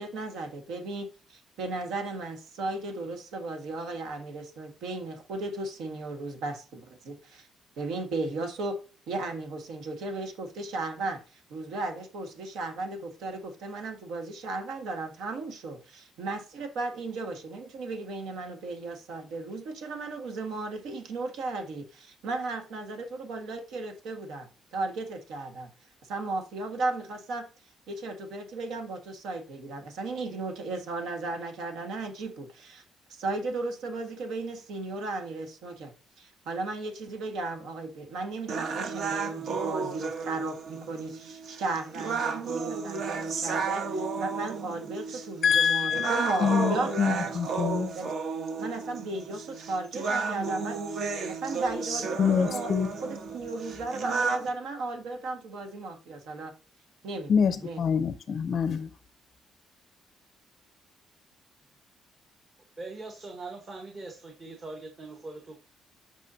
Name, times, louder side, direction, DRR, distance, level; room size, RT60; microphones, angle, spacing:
voice 1, 0.0-7.5 7.8-8.8 9.1-25.7 26.0-27.5 27.9-32.8 33.1-35.9 36.2-46.9 47.2-47.3 47.9-48.1 48.6-52.7 53.0-56.5 57.0-57.3 57.6-57.8, right 3 dB, 80° right, 5 dB, 1.5 m, -35 dB
sound 1, 38.5-54.5, right 5 dB, 55° right, 1.1 m, -33 dB
voice 2, 45.4-47.9 52.2-52.9 57.3-58.9, left 7 dB, 40° left, 10 dB, 0.5 m, -26 dB
voice 3, 62.8-65.6, right 3 dB, 30° right, 3 dB, 1.1 m, -41 dB
8.2 x 5.6 x 2.7 m, 0.36 s
cardioid pair, 160°, 0 cm